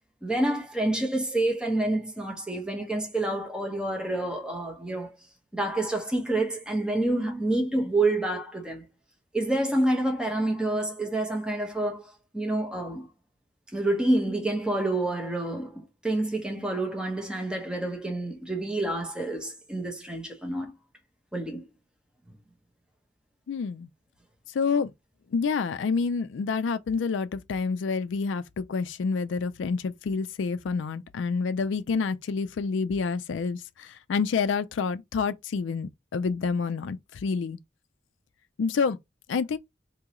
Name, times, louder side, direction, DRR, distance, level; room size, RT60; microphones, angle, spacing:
voice 1, 0.2-5.1 5.5-8.8 9.3-13.1 13.7-20.7 21.3-21.6, right 2 dB, 5° right, 0.9 m, -28 dB
voice 2, 23.5-23.9 24.6-24.9 25.3-33.6 34.1-37.0 37.2-37.6 38.6-39.0 39.3-39.6, left 5 dB, 80° left, 0.4 m, -28 dB
3.6 x 2.7 x 3.0 m
head